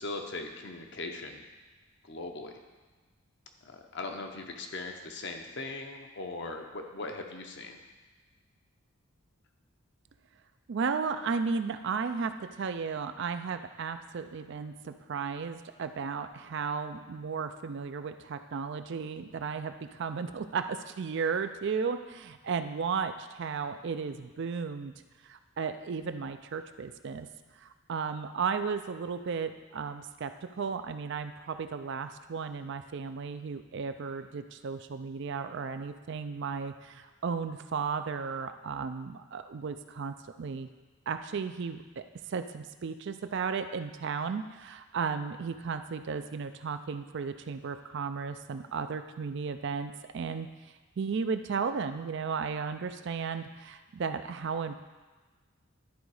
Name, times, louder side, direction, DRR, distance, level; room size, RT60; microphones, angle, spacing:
voice 1, 0.0-1.4 2.0-2.6 3.6-7.8, left 3 dB, 55° left, 4 dB, 0.8 m, -39 dB
voice 2, 10.7-24.9 25.2-27.3 27.6-40.7 41.1-50.5 51.0-54.8, right 5 dB, 55° right, 9 dB, 0.4 m, -34 dB
11.5 x 4.0 x 4.8 m, 1.3 s
head